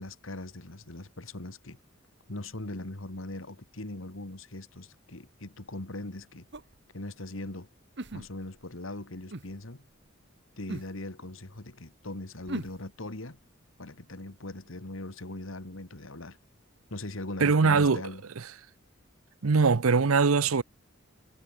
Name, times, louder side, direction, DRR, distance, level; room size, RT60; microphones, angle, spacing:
voice 1, 0.0-1.8 2.3-6.5 6.9-7.7 8.1-9.9 10.6-13.4 13.8-16.4 16.9-18.2, left 2 dB, 70° left, 2.1 m, -40 dB
sound 1, 6.5-6.7 8.0-8.6 9.3-9.5 10.7-10.9 12.5-12.8, right 2 dB, 55° right, 1.3 m, -37 dB
voice 2, 17.4-18.0 19.4-20.6, right 4 dB, 85° right, 0.7 m, -22 dB
head